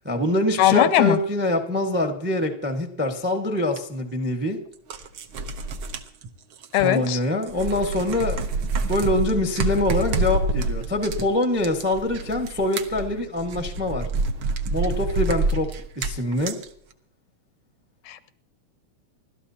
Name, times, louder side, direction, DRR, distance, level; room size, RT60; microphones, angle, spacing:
voice 1, 0.0-4.6 6.8-8.5 8.9-14.1 14.7-15.7 16.0-16.6, left 1 dB, 15° right, 4 dB, 0.3 m, -24 dB
voice 2, 0.6-1.2 6.7-7.2 18.1-18.3, left 12 dB, 85° left, 13 dB, 2.1 m, -20 dB
sound 1, 3.8-3.9 4.7-7.2 7.4-16.7, right 2 dB, 65° right, 1.3 m, -27 dB
28.0 x 13.0 x 2.8 m, 0.63 s
omnidirectional pair, 3.3 m